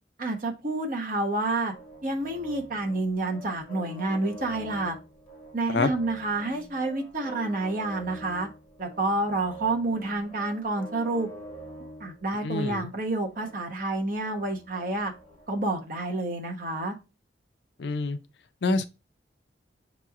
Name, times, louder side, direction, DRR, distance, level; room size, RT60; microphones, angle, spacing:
voice 1, 0.2-1.7 2.0-4.9 5.5-8.5 8.8-11.3 12.0-15.1 15.5-16.9, right 2 dB, 45° right, 0.9 m, -29 dB
sound 1, 1.7-15.8, right 1 dB, 5° left, 2.2 m, -46 dB
voice 2, 12.4-12.9 17.8-18.2 18.6-18.9, left 3 dB, 70° left, 0.4 m, -26 dB
7.4 x 3.0 x 2.4 m
head